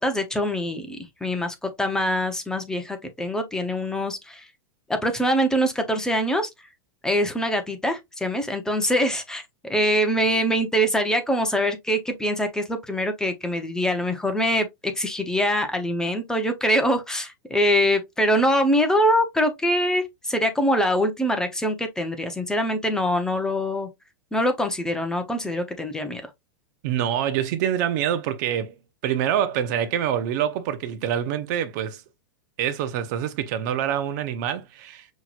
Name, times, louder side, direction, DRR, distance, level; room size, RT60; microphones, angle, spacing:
voice 1, 0.0-4.5 4.9-6.5 7.0-14.7 14.9-23.9 24.3-26.3, equal, 5° left, 0.8 m, -24 dB
voice 2, 26.8-28.7 29.0-32.0 32.6-35.1, right 10 dB, 50° right, 0.7 m, -26 dB
5.7 x 3.1 x 2.4 m
supercardioid pair, 140°, 12 cm